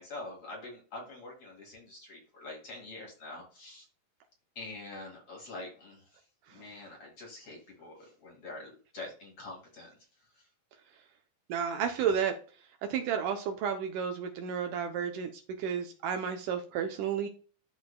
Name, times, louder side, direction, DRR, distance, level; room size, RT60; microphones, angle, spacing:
voice 1, 0.0-3.9 4.6-6.2 6.5-9.9 10.4-10.5, left 2 dB, 45° left, -2 dB, 2.8 m, -45 dB
voice 2, 11.5-12.3 12.9-15.3 15.6-17.3, right 7 dB, 75° right, 6 dB, 2.1 m, -31 dB
13.0 x 4.4 x 2.2 m, 0.39 s
omnidirectional pair, 4.1 m